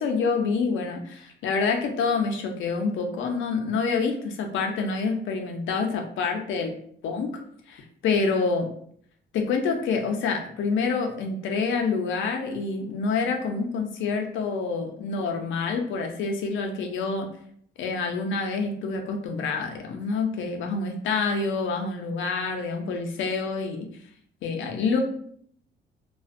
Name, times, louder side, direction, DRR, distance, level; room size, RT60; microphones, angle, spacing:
voice 1, 0.0-6.7 7.0-7.3 7.7-8.7 9.3-17.3 17.8-23.9 24.4-25.0, left 4 dB, 75° left, 3 dB, 0.5 m, -27 dB
2.4 x 2.1 x 2.4 m, 0.63 s
cardioid pair, 90°, 20 cm